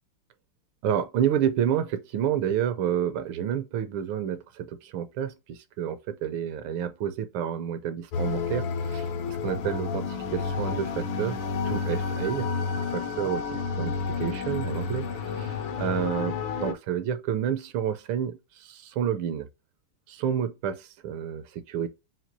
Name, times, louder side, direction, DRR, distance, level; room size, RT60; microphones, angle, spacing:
voice 1, 0.8-11.4 11.6-12.5 12.8-19.5 20.1-21.9, right 9 dB, 75° right, 1.4 m, -30 dB
sound 1, 8.1-16.7, left 5 dB, 75° left, 1.5 m, -30 dB
5.9 x 2.4 x 2.6 m
omnidirectional pair, 2.4 m